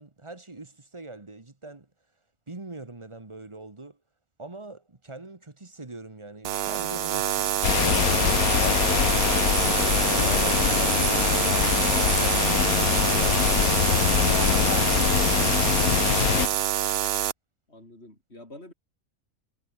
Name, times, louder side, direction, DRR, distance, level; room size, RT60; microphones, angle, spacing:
voice 1, 0.0-1.9 2.5-4.0 4.4-11.5 12.1-16.6, right 2 dB, 20° right, 1.4 m, -42 dB
sound 1, 6.4-17.3, right 11 dB, 60° right, 0.7 m, -26 dB
sound 2, 7.6-16.5, left 11 dB, 85° left, 1.3 m, -23 dB
Wind instrument woodwind instrument, 7.7-12.5, left 2 dB, 70° left, 7.6 m, -50 dB
voice 2, 17.7-18.7, left 1 dB, 45° left, 7.9 m, -46 dB
omnidirectional pair, 1.5 m